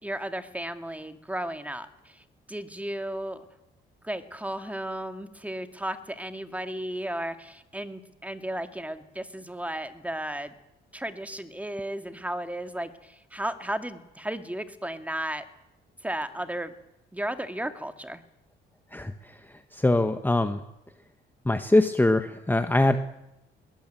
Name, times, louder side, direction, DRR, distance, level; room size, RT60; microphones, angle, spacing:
voice 1, 0.0-3.5 4.0-10.5 10.9-15.4 16.0-16.7 17.1-18.2, right 1 dB, 5° right, 8 dB, 2.2 m, -34 dB
voice 2, 18.9-19.4 19.7-20.6 21.4-23.0, left 2 dB, 10° left, 8 dB, 1.4 m, -23 dB
21.5 x 19.0 x 9.2 m, 0.90 s
cardioid pair, 90°, 20 cm